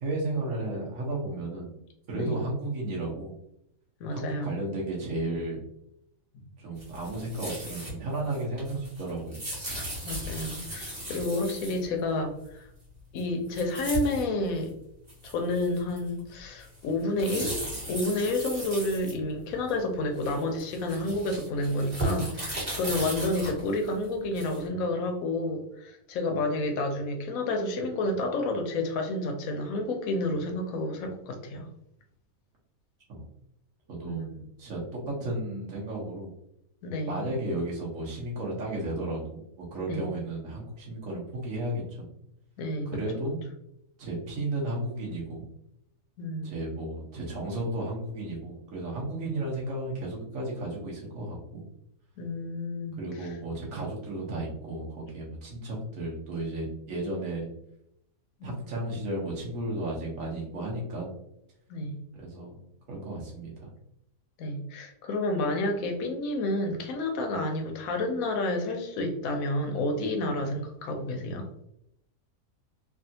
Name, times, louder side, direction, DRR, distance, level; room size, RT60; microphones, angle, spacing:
voice 1, 0.0-1.7 2.1-3.3 4.1-5.6 6.6-9.4 33.1-33.2 33.9-34.3 34.6-36.3 37.1-42.1 42.9-43.4 44.0-45.5 46.4-51.6 52.9-57.5 58.4-61.1 62.1-62.6 62.9-63.7, right 2 dB, 60° right, -3 dB, 1.3 m, -33 dB
voice 2, 4.0-4.5 10.0-12.7 13.1-14.7 15.2-17.6 17.9-31.7 34.0-34.5 36.8-37.2 39.9-40.1 42.6-42.9 46.2-46.6 52.2-53.0 58.4-58.5 61.7-61.9 64.4-71.5, left 2 dB, 70° left, 5 dB, 1.0 m, -30 dB
sound 1, 6.8-7.9 8.2-11.9 13.2-13.3 13.5-14.3 14.6-14.7 15.1-16.2 16.6-19.7 20.2-24.7, equal, 30° right, 1.5 m, -36 dB
3.3 x 2.3 x 2.6 m, 0.78 s
omnidirectional pair, 1.6 m